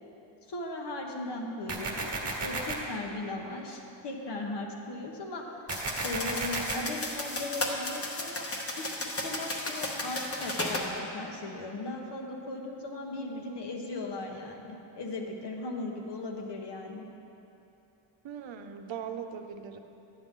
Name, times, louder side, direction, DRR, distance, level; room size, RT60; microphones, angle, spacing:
voice 1, 0.5-5.7 6.0-8.4 8.8-8.9 9.2-17.1, left 2 dB, 65° left, 1 dB, 1.1 m, -38 dB
sound 1, 1.7-2.7 5.7-6.7, right 3 dB, 35° right, 1.2 m, -33 dB
sound 2, 5.7-10.9, left 1 dB, 30° left, 0.9 m, -34 dB
voice 2, 13.2-13.6 18.2-19.8, right 7 dB, 75° right, 6 dB, 0.7 m, -40 dB
11.5 x 8.6 x 3.7 m, 2.9 s
wide cardioid pair, 180°, 45 cm